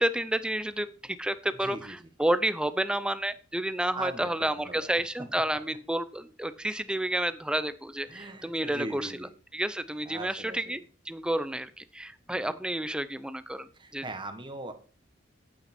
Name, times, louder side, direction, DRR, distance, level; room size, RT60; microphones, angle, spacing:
voice 1, 0.0-9.1 9.5-10.8 11.1-14.1, right 1 dB, 5° right, 13 dB, 0.6 m, -30 dB
voice 2, 1.6-2.1 3.9-5.0 8.1-9.3 10.0-10.8 12.3-12.5 13.7-14.7, right 2 dB, 25° right, 8 dB, 1.4 m, -40 dB
8.8 x 8.6 x 4.4 m, 0.40 s
head